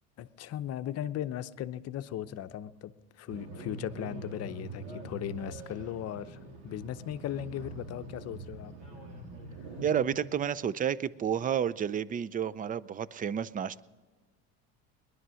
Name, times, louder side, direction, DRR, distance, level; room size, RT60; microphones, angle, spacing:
voice 1, 0.2-2.9 3.2-8.7, left 11 dB, 50° left, 12 dB, 0.7 m, -37 dB
sound 1, 3.3-10.1, right 2 dB, 85° right, 3.3 m, -44 dB
voice 2, 9.8-13.8, right 8 dB, 25° right, 19 dB, 0.5 m, -30 dB
19.5 x 11.0 x 6.3 m, 1.4 s
supercardioid pair, 100°, 33 cm